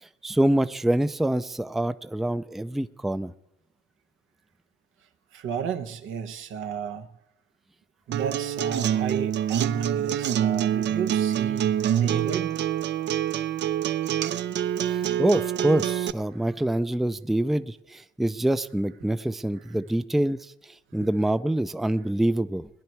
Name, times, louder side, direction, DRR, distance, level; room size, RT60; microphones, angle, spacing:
voice 1, 0.0-3.3 14.9-22.7, right 1 dB, ahead, 0.4 m, -26 dB
voice 2, 5.3-7.1 8.1-11.7 12.0-12.5 16.3-16.5 20.9-21.1, right 7 dB, 85° right, 1.0 m, -33 dB
Acoustic guitar, 8.1-16.1, right 10 dB, 60° right, 0.5 m, -26 dB
18.5 x 10.5 x 4.5 m
cardioid pair, 90°, 20 cm